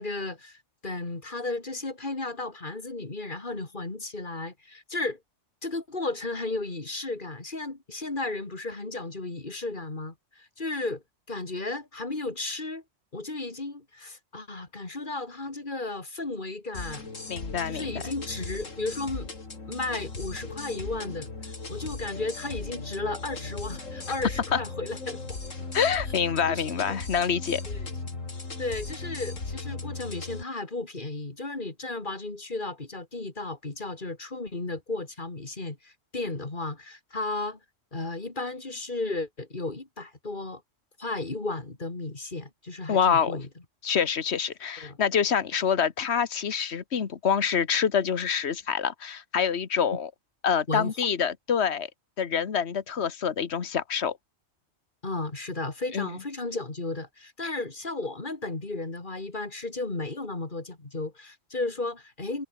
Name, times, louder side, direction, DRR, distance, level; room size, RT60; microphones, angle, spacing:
voice 1, 0.0-5.2 5.6-11.0 11.3-12.8 13.1-17.1 17.6-19.3 19.7-21.3 21.7-25.4 26.5-27.0 27.7-27.8 28.6-37.6 37.9-40.6 41.0-43.5 44.8-45.0 50.7-51.1 55.0-62.5, left 2 dB, 40° left, 3.2 m, -34 dB
sound 1, 16.7-30.4, left 3 dB, 85° left, 3.6 m, -37 dB
voice 2, 17.3-17.9 24.5-24.6 25.7-27.6 42.9-43.4 43.8-50.1 50.4-51.9 52.2-54.2 55.9-56.2, left 7 dB, 60° left, 1.6 m, -26 dB
omnidirectional pair, 1.3 m